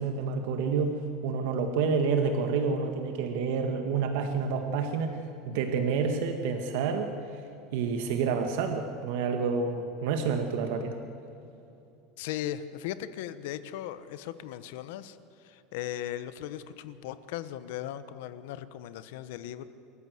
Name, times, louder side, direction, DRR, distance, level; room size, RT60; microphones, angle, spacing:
voice 1, 0.0-5.2 5.5-7.1 7.7-11.0, right 5 dB, 65° right, 5 dB, 1.8 m, -28 dB
voice 2, 12.2-15.2 15.4-19.7, left 12 dB, 70° left, 13 dB, 1.1 m, -37 dB
27.5 x 14.0 x 7.9 m, 2.8 s
supercardioid pair, 170°, 0 cm